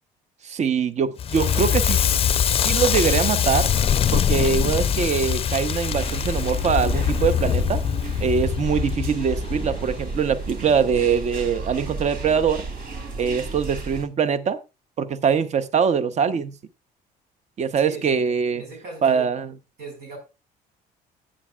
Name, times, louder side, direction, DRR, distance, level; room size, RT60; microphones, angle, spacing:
voice 1, 0.4-2.0 2.6-3.7 4.1-7.8 8.2-12.6 13.2-14.6 15.0-16.5 17.6-18.6 19.0-19.5, right 6 dB, 40° right, 0.8 m, -23 dB
Crackle, 1.2-10.2, left 8 dB, 35° left, 0.5 m, -23 dB
sound 1, 5.9-14.0, right 3 dB, 60° right, 2.9 m, -32 dB
voice 2, 17.7-19.3 19.8-20.2, right 3 dB, 85° right, 4.8 m, -39 dB
14.5 x 8.6 x 2.3 m
cardioid pair, 110°, 17 cm